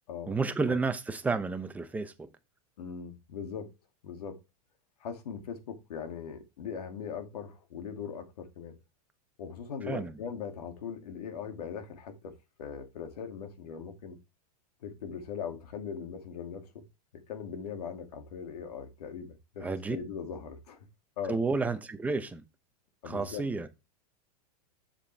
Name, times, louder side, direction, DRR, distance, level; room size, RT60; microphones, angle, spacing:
voice 1, 0.3-2.3 9.9-10.1 19.6-20.0 21.3-22.4 23.0-23.7, right 4 dB, 10° right, 0.7 m, -31 dB
voice 2, 2.8-3.7 4.0-4.4 5.0-8.8 9.4-12.3 12.6-14.2 14.8-16.8 17.3-20.8 21.2-21.4 23.0-23.4, left 7 dB, 80° left, 2.5 m, -40 dB
7.5 x 7.2 x 3.4 m
supercardioid pair, 145°, 20 cm